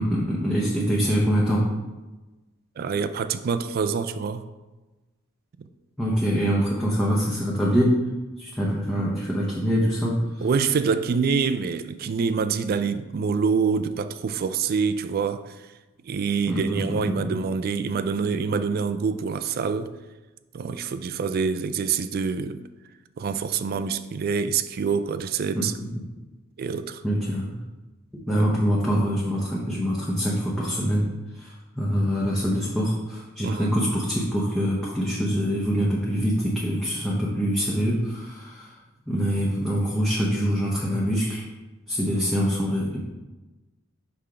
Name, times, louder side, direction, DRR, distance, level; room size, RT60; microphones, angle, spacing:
voice 1, 0.0-1.7 6.0-8.0 8.4-10.5 16.5-17.3 25.5-25.7 27.0-27.5 28.3-31.1 31.3-38.8 39.1-41.4 41.9-43.0, equal, ahead, 0.7 m, -24 dB
voice 2, 2.8-4.5 10.4-15.5 16.1-19.9 20.5-22.6 23.2-25.7 26.6-27.0 28.3-28.5 33.4-33.8, right 5 dB, 45° right, 0.3 m, -26 dB
5.7 x 3.5 x 4.8 m
head